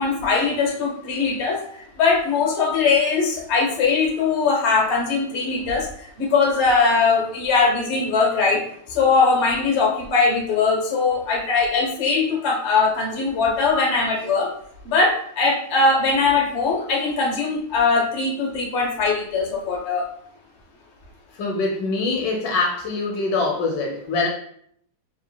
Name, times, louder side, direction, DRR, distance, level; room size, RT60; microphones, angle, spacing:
voice 1, 0.0-8.6 8.9-14.5 14.8-20.0, left 4 dB, 50° left, -1 dB, 0.8 m, -21 dB
voice 2, 21.4-24.3, left 3 dB, 70° left, -1 dB, 1.2 m, -24 dB
4.9 x 3.3 x 2.2 m, 0.65 s
omnidirectional pair, 2.3 m